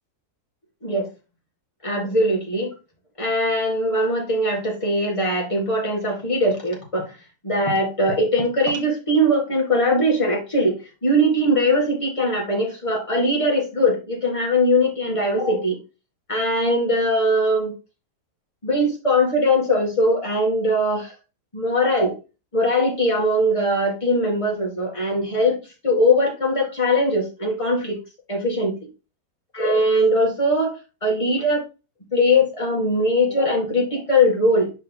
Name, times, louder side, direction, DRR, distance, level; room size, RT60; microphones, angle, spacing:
voice 1, 1.8-2.7 3.2-7.2 7.4-15.8 16.3-17.7 18.6-21.1 21.5-22.1 22.5-28.0 28.3-28.8 29.5-30.7 31.0-31.6 32.1-34.7, left 1 dB, 20° left, -2 dB, 2.0 m, -21 dB
5.6 x 4.6 x 3.8 m, 0.31 s
omnidirectional pair, 1.7 m